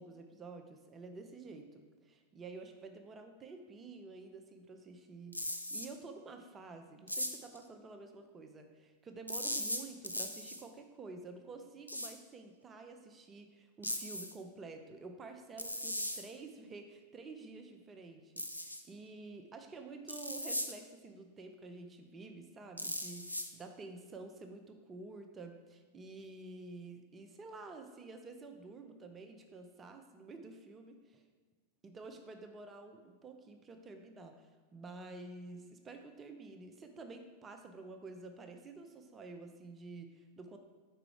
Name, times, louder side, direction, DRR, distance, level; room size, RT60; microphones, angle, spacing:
voice 1, 0.0-31.2 31.8-40.6, right 3 dB, 20° right, 6 dB, 0.5 m, -50 dB
sound 1, 5.3-5.9 7.1-7.6 9.3-10.6 11.9-12.1 13.8-14.3 15.6-16.2 18.4-18.8 20.1-20.7 22.8-23.5, equal, 90° left, 0.4 m, -38 dB
4.9 x 4.6 x 4.8 m, 1.4 s
figure-of-eight pair, 90°, 0 cm